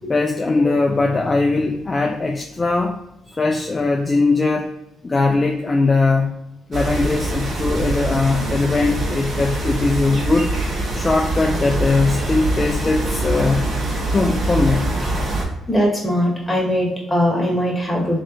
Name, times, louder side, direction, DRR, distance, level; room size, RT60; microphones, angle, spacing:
voice 1, 0.1-3.0 3.4-4.7 5.0-6.3 6.7-10.5 10.9-13.7 14.1-14.9, left 3 dB, 25° left, 2 dB, 0.4 m, -20 dB
Hong Kong Chi Lin nunnery garden, 6.7-15.4, right 2 dB, 50° right, 1.2 m, -24 dB
voice 2, 15.7-18.2, equal, 5° left, -3 dB, 1.4 m, -21 dB
3.4 x 2.8 x 3.9 m, 0.87 s
cardioid pair, 90°, 0 cm